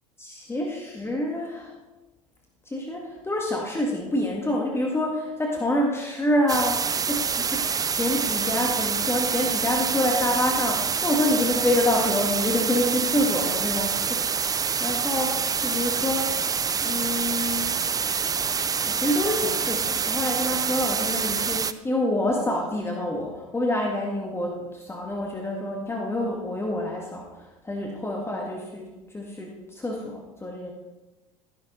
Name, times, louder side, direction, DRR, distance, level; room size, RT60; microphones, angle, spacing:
voice 1, 0.2-1.7 2.7-16.3 16.8-17.7 18.9-28.9 29.1-30.7, left 1 dB, 15° left, -1 dB, 2.0 m, -27 dB
sound 1, 6.5-21.7, right 6 dB, 20° right, 0.5 m, -26 dB
13.0 x 11.0 x 4.2 m, 1.1 s
hypercardioid pair, 75°, 19 cm